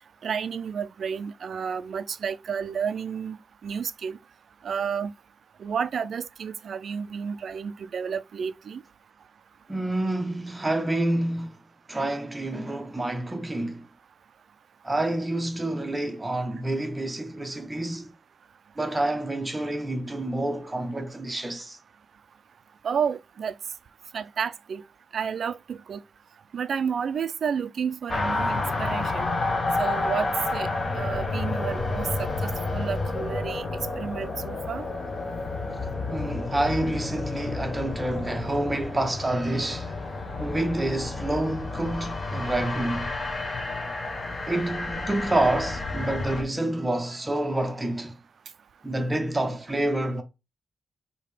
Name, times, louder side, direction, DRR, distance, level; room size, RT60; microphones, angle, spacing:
voice 1, 0.2-3.4 3.6-4.2 4.6-5.1 5.6-8.8 22.8-23.5 24.1-24.8 25.1-26.0 26.5-29.3 29.8-30.7 31.0-33.7 34.0-34.9, right 7 dB, 55° right, 0.3 m, -31 dB
voice 2, 9.7-13.9 14.8-18.1 18.8-21.8 36.1-40.0 40.4-43.1 44.5-48.2 48.8-50.2, right 1 dB, 10° right, 0.7 m, -28 dB
sound 1, 28.1-46.4, left 3 dB, 30° left, 0.8 m, -30 dB
5.0 x 2.8 x 3.3 m
wide cardioid pair, 165°, 0 cm